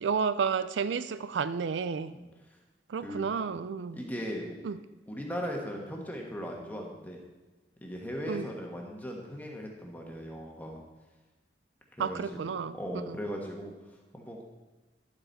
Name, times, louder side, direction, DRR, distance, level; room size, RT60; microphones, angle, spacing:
voice 1, 0.0-2.2 2.9-4.0 4.6-4.8 8.3-8.5 12.0-12.8 13.1-13.2, right 6 dB, 90° right, 14 dB, 0.4 m, -31 dB
voice 2, 2.9-3.3 3.9-4.6 5.1-7.2 7.8-10.8 12.0-12.4 12.7-13.7 14.1-14.4, equal, 10° left, 0 dB, 1.4 m, -38 dB
11.0 x 7.9 x 4.1 m, 1.2 s
head